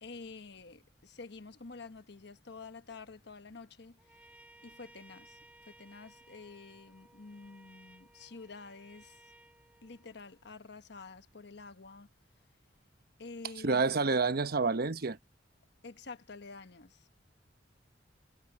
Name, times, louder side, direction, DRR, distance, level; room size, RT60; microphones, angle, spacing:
voice 1, 0.0-4.3 4.6-9.2 9.8-12.1 13.2-14.1 15.8-17.2, left 4 dB, 65° left, 1.2 m, -49 dB
Trumpet, 4.0-10.5, right 1 dB, 10° right, 6.8 m, -60 dB
voice 2, 13.6-15.2, right 4 dB, 55° right, 1.0 m, -28 dB
head